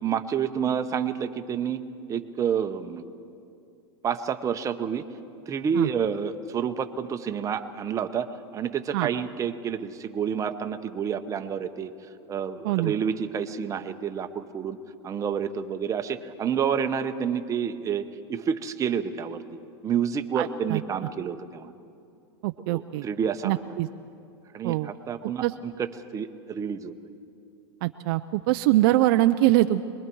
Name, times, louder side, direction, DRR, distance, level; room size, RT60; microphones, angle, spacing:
voice 1, 0.0-1.8 2.1-3.0 4.0-5.0 5.5-11.9 12.3-14.8 15.0-18.0 18.3-19.4 19.8-21.7 22.7-23.6 24.5-25.9 26.1-26.9, right 7 dB, 20° right, 8 dB, 1.0 m, -29 dB
voice 2, 20.4-20.8 22.4-23.1 23.4-23.9 24.6-24.9 25.4-25.5 27.8-29.8, right 16 dB, 55° right, 10 dB, 0.5 m, -23 dB
26.0 x 21.5 x 4.7 m, 2.5 s
hypercardioid pair, 125°, 14 cm